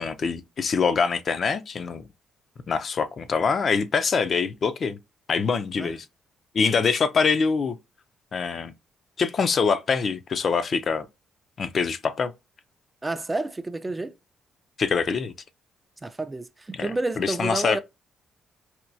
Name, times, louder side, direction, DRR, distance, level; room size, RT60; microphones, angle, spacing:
voice 1, 0.0-2.1 2.7-5.0 5.3-6.1 6.5-7.8 8.3-8.7 9.2-11.1 11.6-12.3 14.8-15.3 16.7-16.9 17.2-17.8, left 5 dB, 50° left, 0.4 m, -24 dB
voice 2, 13.0-14.1 16.0-17.8, right 2 dB, 20° right, 0.3 m, -30 dB
4.3 x 2.2 x 2.5 m
cardioid pair, 90°, 0 cm